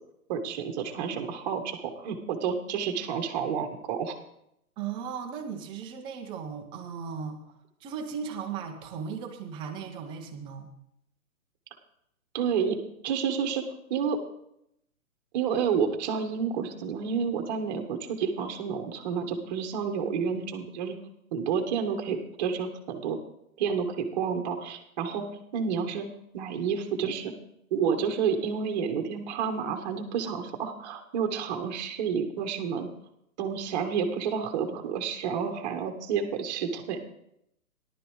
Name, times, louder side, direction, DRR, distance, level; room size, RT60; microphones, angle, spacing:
voice 1, 0.3-4.2 12.3-12.8 13.0-13.6 13.9-14.2 15.3-20.9 21.3-23.2 23.6-25.2 25.5-26.1 26.3-27.3 27.7-32.9 33.4-37.0, right 6 dB, 30° right, 5 dB, 1.3 m, -30 dB
voice 2, 4.8-7.4 7.8-10.7, right 6 dB, 10° right, 3 dB, 0.8 m, -37 dB
17.5 x 11.5 x 3.2 m, 0.77 s
hypercardioid pair, 140°, 44 cm